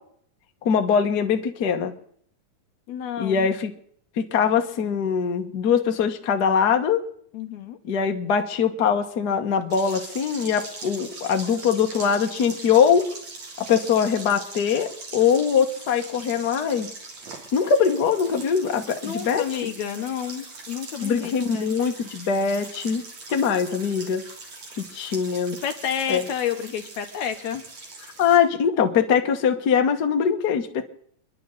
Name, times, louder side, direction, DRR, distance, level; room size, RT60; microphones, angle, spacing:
voice 1, 0.6-1.9 3.2-3.7 4.2-7.0 7.8-13.0 13.6-16.9 17.5-19.4 21.0-23.0 23.3-24.2 24.8-25.6 26.1-26.2 28.2-30.9, left 7 dB, 45° left, 4 dB, 1.4 m, -22 dB
voice 2, 2.9-3.5 7.3-7.8 19.0-21.7 25.6-27.6, left 9 dB, 70° left, 7 dB, 2.1 m, -30 dB
sound 1, 9.7-28.4, right 3 dB, 55° right, 4.5 m, -41 dB
30.0 x 11.0 x 4.1 m, 0.63 s
omnidirectional pair, 3.7 m